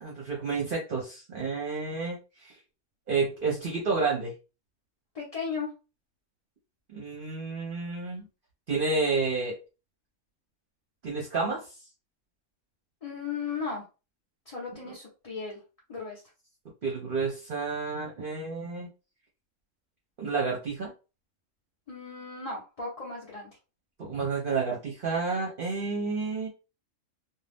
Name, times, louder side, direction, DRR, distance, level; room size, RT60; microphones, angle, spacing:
voice 1, 0.0-2.5 3.1-4.3 6.9-8.2 8.7-9.6 11.0-11.7 16.8-18.9 20.2-20.9 24.0-26.5, right 4 dB, 45° right, -2 dB, 0.8 m, -30 dB
voice 2, 5.1-5.7 13.0-13.8 14.5-15.6 15.9-16.2 21.9-23.5, left 5 dB, 30° left, -5 dB, 0.8 m, -36 dB
2.6 x 2.3 x 3.3 m, 0.31 s
omnidirectional pair, 1.4 m